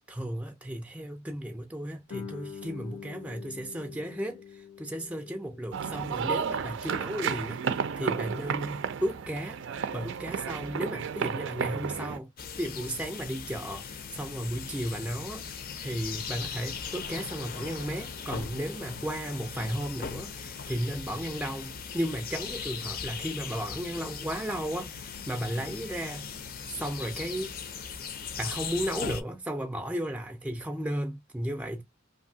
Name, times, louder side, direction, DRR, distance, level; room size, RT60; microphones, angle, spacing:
voice 1, 0.1-9.6 9.9-12.3 12.6-15.5 15.8-26.3 26.7-27.6 28.4-31.8, right 1 dB, 5° right, 0.4 m, -34 dB
Guitar, 2.1-7.5, left 7 dB, 90° left, 0.6 m, -46 dB
sound 1, 5.7-12.2, right 6 dB, 65° right, 0.4 m, -32 dB
sound 2, 12.4-29.2, left 6 dB, 45° left, 0.5 m, -39 dB
2.7 x 2.6 x 2.7 m
head